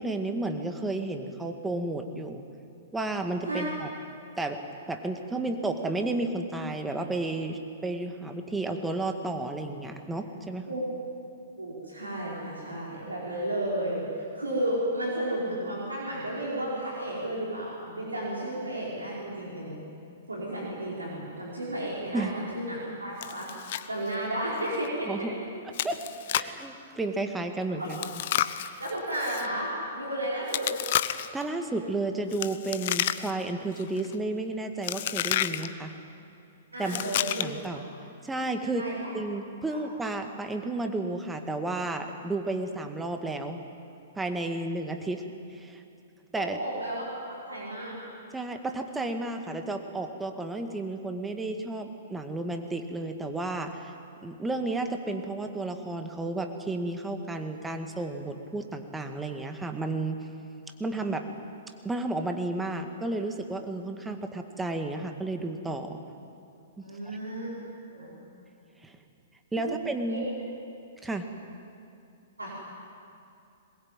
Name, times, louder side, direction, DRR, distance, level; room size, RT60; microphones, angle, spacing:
voice 1, 0.0-2.4 2.9-3.9 4.4-4.6 4.9-10.7 22.1-22.4 25.1-25.4 25.8-26.0 26.3-28.0 31.1-35.9 36.8-37.1 37.4-37.8 38.2-43.6 44.2-45.3 45.5-45.8 46.3-46.6 48.3-53.9 54.2-60.2 60.8-61.3 61.8-66.0 66.8-66.9 68.8-68.9 69.5-70.3 71.0-71.3, right 2 dB, 10° right, 5 dB, 2.0 m, -32 dB
voice 2, 11.6-19.8 20.3-23.5 23.9-25.3 27.7-27.9 28.8-30.7 36.7-37.8 38.8-39.1 39.7-39.8 46.3-47.0 47.5-47.9 66.8-67.5 67.9-68.2 69.5-69.8 70.1-70.2 72.4-72.5, right 1 dB, 90° right, -4 dB, 4.8 m, -33 dB
Chewing mastication, 23.2-23.9 24.1-24.2 24.7-24.9 25.7-26.6 27.9-29.5 30.5-31.4 32.3-33.5 33.8-34.1 34.8-35.7 36.8-37.7, left 12 dB, 55° left, 0.8 m, -30 dB
21.5 x 21.0 x 9.0 m, 2.7 s
figure-of-eight pair, 115°, 0 cm